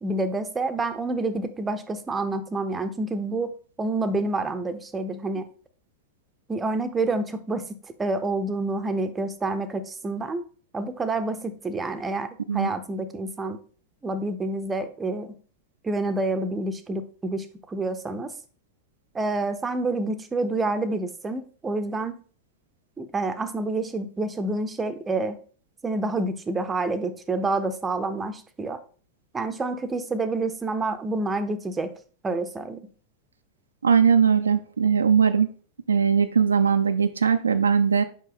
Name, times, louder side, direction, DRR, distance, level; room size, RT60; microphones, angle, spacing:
voice 1, 0.0-3.5 3.8-5.5 6.5-10.4 10.7-13.6 14.0-15.3 15.8-18.3 19.1-22.2 23.0-25.4 25.8-28.8 29.3-31.9 32.2-32.8, right 2 dB, 15° right, 9 dB, 0.6 m, -28 dB
voice 2, 33.8-35.5 35.9-38.0, right 6 dB, 75° right, 8 dB, 0.4 m, -20 dB
5.4 x 5.2 x 3.8 m, 0.41 s
figure-of-eight pair, 90°, 0 cm